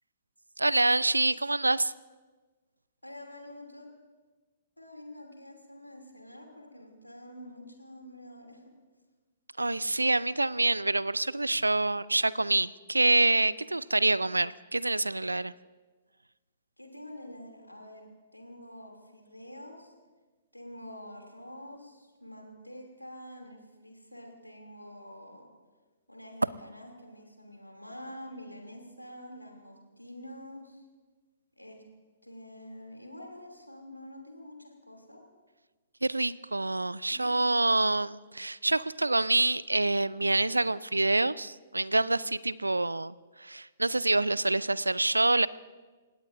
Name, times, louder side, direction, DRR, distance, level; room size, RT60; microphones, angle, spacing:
voice 1, 0.6-1.9 9.6-15.5 36.0-45.5, right 2 dB, 80° right, 20 dB, 0.4 m, -26 dB
voice 2, 3.0-3.9 4.8-8.6 16.8-19.9 20.5-25.5 26.1-30.8 31.6-31.8 32.2-35.2 37.1-37.4, left 1 dB, 85° left, 2 dB, 2.8 m, -47 dB
28.5 x 16.5 x 2.6 m, 1.3 s
figure-of-eight pair, 115°, 0 cm